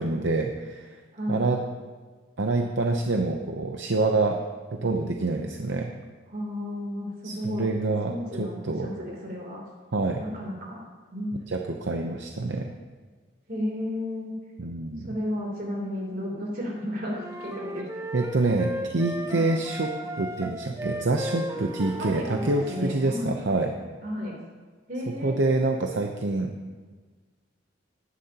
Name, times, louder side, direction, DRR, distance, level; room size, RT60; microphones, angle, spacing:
voice 1, 0.0-1.0 1.3-1.6 2.4-4.4 4.7-5.9 7.2-8.9 9.9-10.2 11.5-12.7 14.6-15.1 18.1-23.7 25.2-26.5, right 2 dB, 70° right, 3 dB, 0.7 m, -26 dB
voice 2, 1.1-1.4 6.3-7.7 8.1-9.6 10.2-10.8 11.1-11.4 13.5-14.3 15.1-17.9 19.3-19.5 21.5-23.4 24.0-24.4 24.9-25.6, left 1 dB, 50° right, -2 dB, 3.2 m, -33 dB
sound 1, 17.1-22.9, right 1 dB, 15° right, 0.6 m, -35 dB
16.0 x 11.5 x 2.9 m, 1.4 s
head